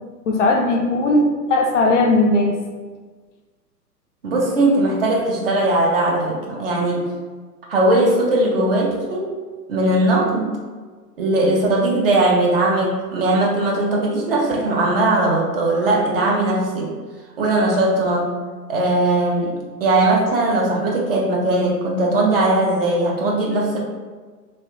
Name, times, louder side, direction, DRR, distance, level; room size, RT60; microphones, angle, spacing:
voice 1, 0.3-2.6, left 2 dB, 50° left, 1 dB, 0.5 m, -17 dB
voice 2, 4.2-7.1 7.7-9.3 9.7-10.5 11.2-16.9 17.4-18.3 18.7-23.8, right 2 dB, 35° right, -2 dB, 0.5 m, -19 dB
3.1 x 3.0 x 2.9 m, 1.4 s
figure-of-eight pair, 110°, 49 cm